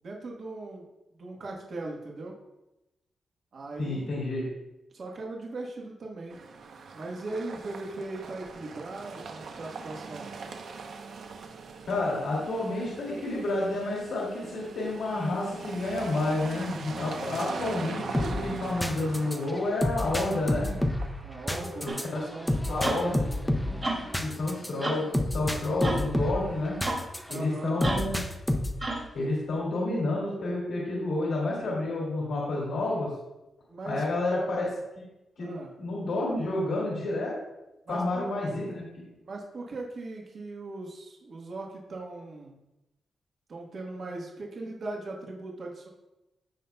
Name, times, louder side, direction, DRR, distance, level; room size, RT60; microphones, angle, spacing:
voice 1, 0.0-0.9 1.2-2.3 3.5-4.2 4.9-6.4 6.9-10.3 21.2-21.9 22.1-23.2 27.3-27.8 33.7-34.0 35.4-35.7 37.9-38.3 39.2-42.6 43.5-45.9, right 2 dB, 45° right, -1 dB, 1.3 m, -39 dB
voice 2, 3.8-4.5 11.9-20.8 21.8-22.2 22.7-23.2 24.2-25.1 25.3-26.8 27.3-28.2 29.1-33.1 33.8-34.7 34.9-35.1 35.4-37.3 37.9-38.8, left 2 dB, 75° left, -4 dB, 2.3 m, -30 dB
sound 1, 6.3-23.3, right 4 dB, 65° right, 0.8 m, -42 dB
sound 2, 18.1-27.4 27.8-28.9, left 1 dB, 5° left, 0.6 m, -30 dB
sound 3, 21.9-22.1 22.8-23.0 23.8-24.1 24.8-25.1 25.8-26.1 26.8-27.1 27.8-28.2 28.8-29.1, right 2 dB, 25° right, 1.4 m, -31 dB
15.0 x 5.5 x 2.3 m, 0.96 s
wide cardioid pair, 170°, 0 cm